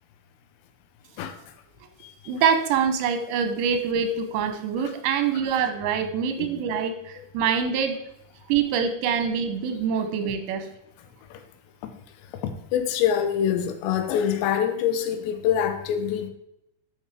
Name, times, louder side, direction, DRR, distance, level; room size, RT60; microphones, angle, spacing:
voice 1, 2.3-8.0 8.5-10.7, right 7 dB, 85° right, 7 dB, 3.2 m, -25 dB
voice 2, 12.4-16.3, left 9 dB, 80° left, 8 dB, 3.0 m, -25 dB
11.5 x 5.1 x 4.8 m, 0.82 s
omnidirectional pair, 5.0 m